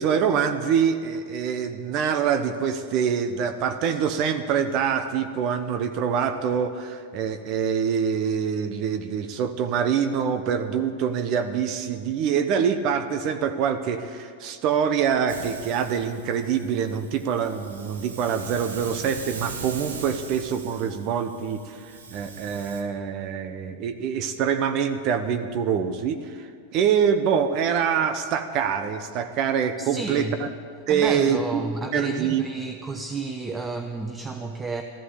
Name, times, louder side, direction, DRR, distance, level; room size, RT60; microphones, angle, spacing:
voice 1, 0.0-21.8 22.1-30.5 30.9-32.4, right 7 dB, 45° right, 1.0 m, -25 dB
Hiss, 15.3-22.8, right 5 dB, 80° right, 1.8 m, -40 dB
voice 2, 29.8-30.4 30.9-34.8, right 3 dB, 15° right, 0.9 m, -31 dB
14.0 x 11.5 x 8.2 m
hypercardioid pair, 105°, 0 cm